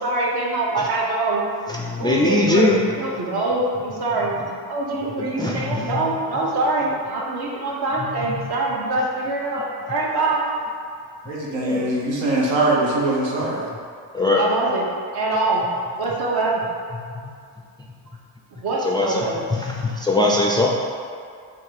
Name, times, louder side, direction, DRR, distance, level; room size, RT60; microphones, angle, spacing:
voice 1, 0.0-1.4 2.0-2.7 3.0-4.3 4.7-10.5 14.4-14.8 15.1-15.7 15.9-16.7 18.5-19.5, right 2 dB, 60° right, -3 dB, 1.0 m, -24 dB
voice 2, 1.7-2.8 5.2-6.5 8.0-8.5 11.5-11.9 14.1-14.4 17.2-17.3 18.8-20.8, left 2 dB, 10° left, -3 dB, 0.3 m, -22 dB
voice 3, 11.3-13.7, right 2 dB, 80° right, -4 dB, 1.0 m, -22 dB
3.7 x 2.6 x 4.7 m, 2.3 s
cardioid pair, 85°, 44 cm